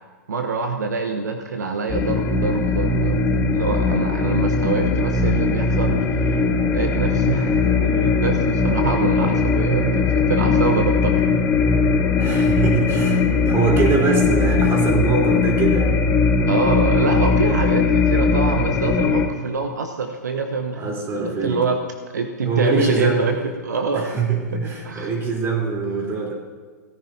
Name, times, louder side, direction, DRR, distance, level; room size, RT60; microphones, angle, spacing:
voice 1, 0.3-3.2 3.5-6.2 6.7-11.1 16.5-21.8 22.1-23.4 23.6-24.1 24.8-25.1, right 4 dB, 75° right, 5 dB, 1.0 m, -25 dB
sound 1, 1.9-19.3, left 4 dB, 25° left, 1.5 m, -19 dB
voice 2, 12.2-16.0 20.8-21.7 22.4-23.3 23.9-26.3, right 4 dB, 25° right, -1 dB, 3.7 m, -23 dB
17.0 x 10.5 x 2.8 m, 1.5 s
hypercardioid pair, 110°, 9 cm